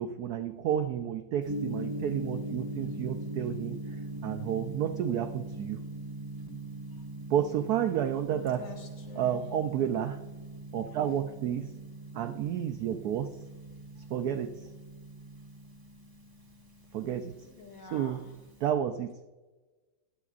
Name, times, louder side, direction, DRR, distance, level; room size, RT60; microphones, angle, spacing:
voice 1, 0.0-5.8 7.3-8.7 9.2-10.2 10.7-11.8 12.1-13.4 14.1-14.7 16.9-17.5 17.9-18.3 18.6-19.1, right 9 dB, 90° right, 8 dB, 0.8 m, -31 dB
Gong, 1.4-18.7, right 1 dB, 15° right, 0.7 m, -41 dB
voice 2, 8.5-9.4 17.4-18.4, left 4 dB, 65° left, 0 dB, 2.4 m, -48 dB
21.5 x 8.3 x 2.5 m, 1.2 s
omnidirectional pair, 2.2 m